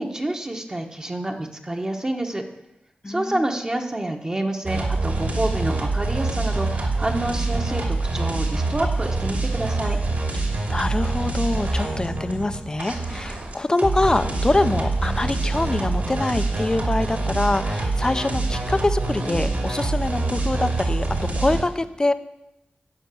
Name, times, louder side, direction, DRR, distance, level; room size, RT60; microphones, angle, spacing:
voice 1, 0.0-2.4 3.1-10.0, right 1 dB, 20° right, 2 dB, 1.2 m, -28 dB
voice 2, 3.0-3.5 10.7-21.1 21.3-22.1, left 2 dB, 20° left, 11 dB, 0.6 m, -24 dB
sound 1, 4.6-21.6, right 2 dB, 55° right, 2.7 m, -25 dB
12.5 x 5.8 x 9.1 m, 0.89 s
wide cardioid pair, 110°, 3 cm